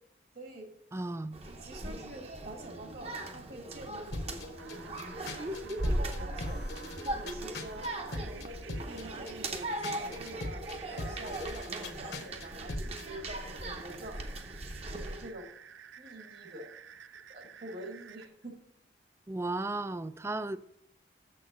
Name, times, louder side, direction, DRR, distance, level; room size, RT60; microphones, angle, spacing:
voice 1, 0.3-0.7 1.4-4.4 5.0-5.5 5.8-6.6 7.0-10.6 10.9-14.2 14.6-15.5 16.0-16.7 17.3-18.6, right 1 dB, 55° right, 4 dB, 1.6 m, -46 dB
voice 2, 0.9-1.4 19.3-20.6, right 2 dB, 15° right, 14 dB, 0.3 m, -34 dB
sound 1, 1.3-15.3, right 1 dB, 35° right, 0.8 m, -38 dB
sound 2, 4.1-13.1, left 2 dB, 60° left, 1.1 m, -42 dB
sound 3, 4.6-18.3, right 8 dB, 90° right, 0.5 m, -52 dB
7.0 x 6.5 x 6.7 m, 0.73 s
head